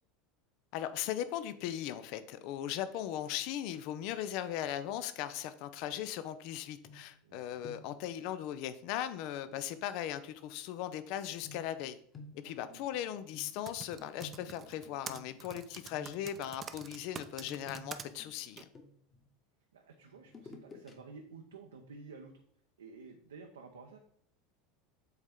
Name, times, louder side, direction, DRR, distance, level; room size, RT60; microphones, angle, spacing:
voice 1, 0.7-12.0 12.3-18.7, left 11 dB, 55° left, 12 dB, 0.5 m, -38 dB
sound 1, 6.8-7.3 7.6-8.1 9.5-9.7 11.4-15.6 15.9-16.5 17.4-19.2 20.2-20.9 21.3-21.4, left 2 dB, 25° left, 1.3 m, -53 dB
voice 2, 7.2-7.6 12.4-12.8 19.7-22.3 22.8-24.0, right 4 dB, 75° right, 3 dB, 0.7 m, -52 dB
Typing, 13.4-18.1 18.6-18.7, right 7 dB, 30° right, 0.6 m, -46 dB
7.9 x 4.2 x 3.6 m, 0.66 s
figure-of-eight pair, 75°, 0 cm